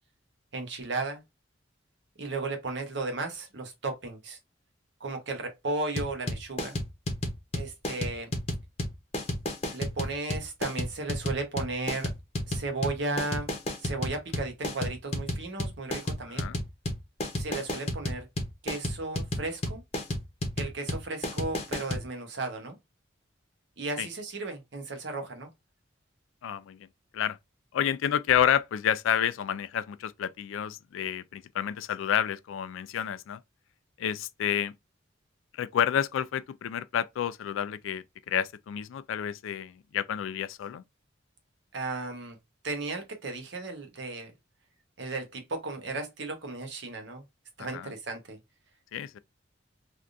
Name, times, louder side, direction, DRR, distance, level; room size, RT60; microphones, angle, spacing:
voice 1, 0.5-1.2 2.2-4.4 5.0-6.8 7.5-8.3 9.7-12.1 12.5-13.5 13.8-16.5 17.4-18.3 18.6-19.8 20.6-22.8 23.8-25.5 41.7-42.4 42.6-44.3 45.0-47.2 47.6-48.4, right 3 dB, 65° right, 0.9 m, -35 dB
sound 1, 6.0-22.0, left 1 dB, 30° left, 0.7 m, -31 dB
voice 2, 26.4-26.8 27.1-27.4 27.7-33.4 34.0-34.7 35.6-40.8 47.6-47.9 48.9-49.2, left 9 dB, 85° left, 0.3 m, -29 dB
3.4 x 2.5 x 2.5 m
head